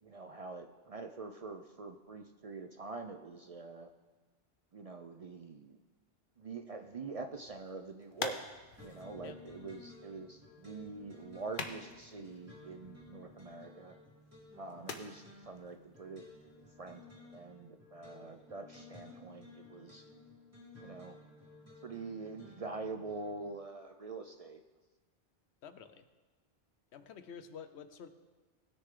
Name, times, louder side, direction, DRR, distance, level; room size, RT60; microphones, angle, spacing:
voice 1, 0.0-3.9 4.7-5.8 6.4-8.4 8.8-14.0 14.6-16.2 16.8-17.0 17.3-20.1 20.8-21.2 21.8-24.6, right 3 dB, 50° right, 6 dB, 0.5 m, -45 dB
sound 1, 7.3-17.0, left 4 dB, 55° left, 0.9 m, -48 dB
sound 2, 8.8-23.5, left 2 dB, 15° right, 2.7 m, -56 dB
voice 2, 25.6-26.1 26.9-28.1, left 7 dB, 85° left, 10 dB, 1.0 m, -49 dB
19.0 x 6.6 x 3.7 m, 1.3 s
omnidirectional pair, 1.1 m